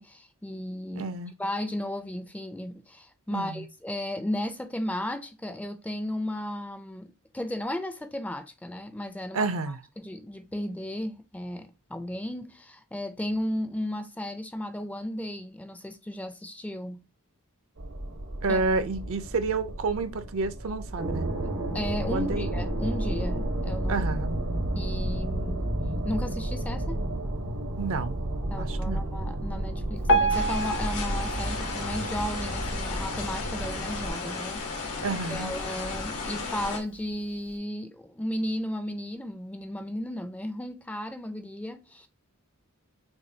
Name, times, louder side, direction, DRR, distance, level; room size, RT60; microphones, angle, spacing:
voice 1, 0.0-1.1 1.4-17.0 18.5-18.6 21.7-24.1 24.7-25.7 26.0-27.0 28.5-35.0 35.3-42.1, left 1 dB, 5° left, 0.4 m, -34 dB
voice 2, 1.0-1.3 3.3-3.7 9.3-9.8 18.4-21.3 22.1-22.5 23.9-24.3 27.8-28.2 28.5-29.0 35.0-35.5, right 3 dB, 65° right, 0.6 m, -29 dB
sound 1, 17.8-34.1, right 1 dB, 90° right, 1.3 m, -32 dB
Piano, 30.1-33.2 33.7-33.9 34.2-34.3 35.0-35.1 35.6-35.7, right 2 dB, 55° left, 0.7 m, -29 dB
sound 2, 30.3-36.8, left 3 dB, 90° left, 1.3 m, -34 dB
6.2 x 2.3 x 2.7 m
head